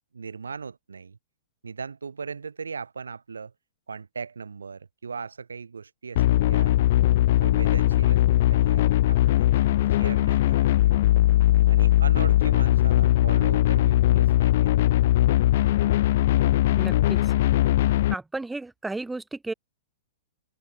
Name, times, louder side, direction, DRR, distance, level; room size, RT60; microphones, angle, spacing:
voice 1, 0.1-1.2 1.6-3.5 3.9-6.8 7.4-11.1 11.7-15.0, right 5 dB, 80° right, 3.5 m, -38 dB
sound 1, 6.1-18.1, left 14 dB, 55° left, 0.5 m, -20 dB
voice 2, 16.8-17.3 18.1-19.5, right 2 dB, 5° right, 2.2 m, -33 dB
open air
figure-of-eight pair, 110°, 0 cm